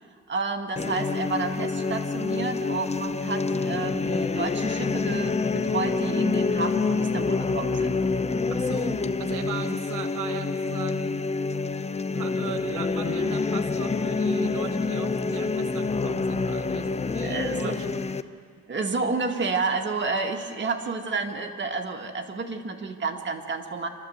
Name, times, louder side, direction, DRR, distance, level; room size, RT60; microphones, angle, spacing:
voice 1, 0.3-8.0 17.2-17.8 18.7-23.9, right 4 dB, 40° right, 3 dB, 2.1 m, -30 dB
sound 1, 0.8-18.2, left 4 dB, 20° left, 0.7 m, -27 dB
voice 2, 8.5-11.2 12.1-18.0, right 9 dB, 85° right, 8 dB, 1.1 m, -38 dB
28.0 x 12.5 x 8.1 m, 2.2 s
cardioid pair, 90°, 30 cm